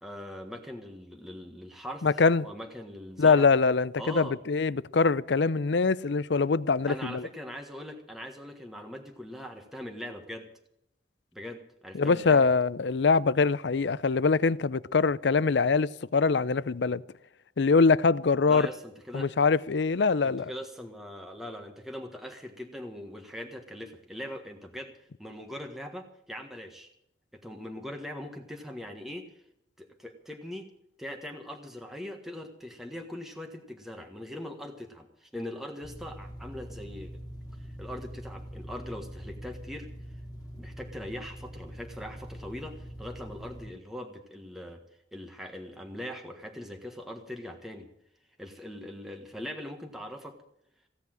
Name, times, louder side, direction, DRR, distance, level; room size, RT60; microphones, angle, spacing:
voice 1, 0.0-3.5 4.0-4.4 6.9-10.5 11.3-12.5 18.5-19.3 20.2-26.9 27.3-29.4 29.8-30.7 31.0-37.1 37.6-39.9 40.5-44.8 45.1-47.9 48.4-50.4, left 1 dB, ahead, 1.5 m, -41 dB
voice 2, 2.0-2.4 3.2-7.3 11.9-17.0 17.6-18.7 19.1-20.5, left 4 dB, 65° left, 0.5 m, -23 dB
sound 1, 35.8-43.7, equal, 20° left, 2.3 m, -43 dB
16.5 x 8.4 x 9.0 m
head